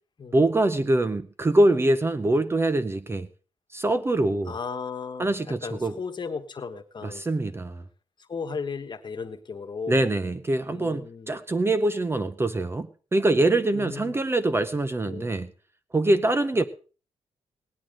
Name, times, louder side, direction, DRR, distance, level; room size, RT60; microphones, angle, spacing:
voice 1, 0.3-3.3 3.7-4.5 5.2-5.9 7.0-7.8 9.9-15.5 15.9-16.6, right 2 dB, 20° right, 11 dB, 0.6 m, -24 dB
voice 2, 4.5-7.2 8.2-10.1 10.7-11.3 13.7-14.2 15.0-15.3 16.5-16.7, left 5 dB, 40° left, 7 dB, 1.3 m, -35 dB
18.0 x 10.5 x 3.8 m, 0.38 s
cardioid pair, 115°, 12 cm